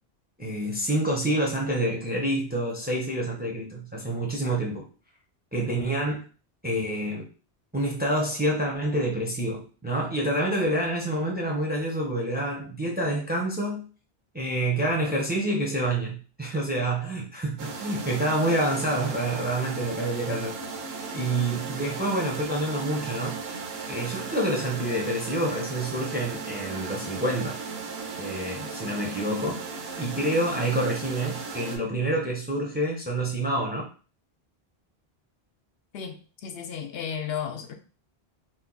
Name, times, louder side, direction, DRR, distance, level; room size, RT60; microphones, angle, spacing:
voice 1, 0.4-4.9 5.5-6.3 6.6-7.2 7.7-13.8 14.3-20.5 21.1-23.4 23.9-27.6 28.2-29.6 30.0-33.9, right 1 dB, 10° right, 0.5 m, -27 dB
sound 1, 17.6-31.8, right 4 dB, 75° right, 0.9 m, -36 dB
voice 2, 35.9-37.7, left 8 dB, 75° left, 0.8 m, -34 dB
2.8 x 2.2 x 3.7 m
omnidirectional pair, 1.1 m